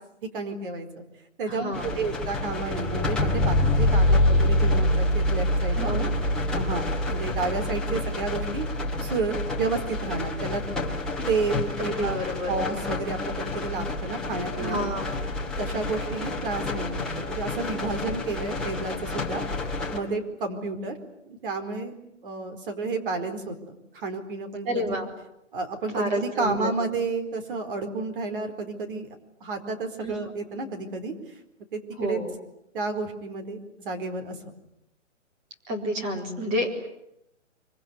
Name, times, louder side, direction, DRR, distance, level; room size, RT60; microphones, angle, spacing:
voice 1, 0.3-1.0 1.4-5.9 6.5-8.7 9.0-10.6 11.3-12.2 12.5-14.9 15.6-19.4 19.9-21.0 21.2-21.9 22.2-24.9 25.5-29.1 29.4-31.1 31.7-32.2 32.7-34.3, right 3 dB, 45° right, 7 dB, 4.6 m, -31 dB
voice 2, 1.4-1.9 5.7-6.1 11.8-12.5 14.6-15.0 24.6-25.1 25.9-26.7 30.0-30.1 32.0-32.3 35.7-36.9, equal, 20° right, 2 dB, 4.2 m, -29 dB
sound 1, 1.7-20.0, left 1 dB, ahead, 2.4 m, -27 dB
25.0 x 24.5 x 9.7 m, 0.81 s
hypercardioid pair, 160°, 38 cm